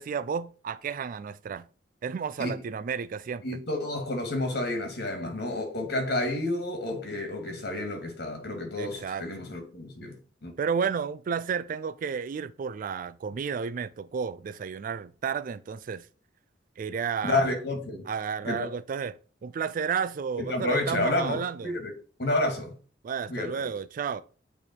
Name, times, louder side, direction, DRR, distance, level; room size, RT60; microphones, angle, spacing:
voice 1, 0.0-1.6 2.0-3.6 8.8-9.3 10.6-16.0 16.8-17.5 18.1-21.7 23.0-24.2, right 6 dB, 50° right, 0.3 m, -32 dB
voice 2, 3.4-10.1 10.4-10.6 17.2-18.0 18.4-18.7 20.4-21.9 22.2-22.7 23.3-23.7, left 2 dB, 60° left, 2.1 m, -30 dB
8.4 x 3.4 x 4.5 m
head